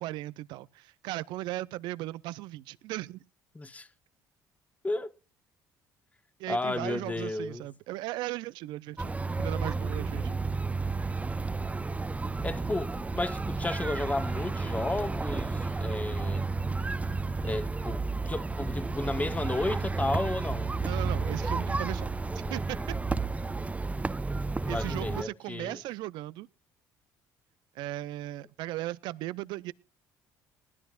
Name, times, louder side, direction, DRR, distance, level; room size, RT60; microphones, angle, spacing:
voice 1, 0.0-3.2 6.4-9.1 9.4-10.4 20.8-22.1 22.5-22.8 24.7-26.5 27.8-29.7, right 16 dB, 70° right, 0.5 m, -37 dB
voice 2, 3.5-3.9 4.8-5.1 6.5-7.7 12.4-16.5 17.4-20.8 24.6-25.8, left 2 dB, 20° left, 1.2 m, -33 dB
sound 1, 9.0-25.2, right 3 dB, 15° right, 0.8 m, -32 dB
19.5 x 13.5 x 2.4 m
hypercardioid pair, 65°, 8 cm